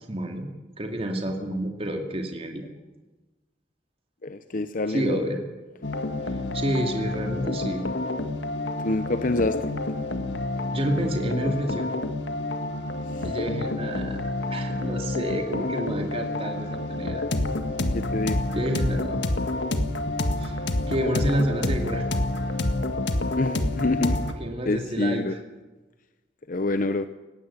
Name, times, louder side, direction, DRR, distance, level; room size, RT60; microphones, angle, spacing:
voice 1, 0.1-0.5 0.8-2.7 4.9-5.4 6.2-7.9 10.7-11.9 13.2-14.2 14.5-17.2 18.5-19.2 20.4-22.1 24.1-25.4, right 1 dB, 30° right, 3 dB, 2.4 m, -29 dB
voice 2, 4.2-5.3 8.8-9.7 13.1-13.3 17.9-18.4 23.4-24.2 24.6-25.4 26.5-27.1, left 2 dB, 45° left, 10 dB, 0.8 m, -26 dB
sound 1, 5.8-24.3, left 2 dB, 75° left, 1.9 m, -28 dB
19.0 x 16.0 x 9.8 m, 1.2 s
head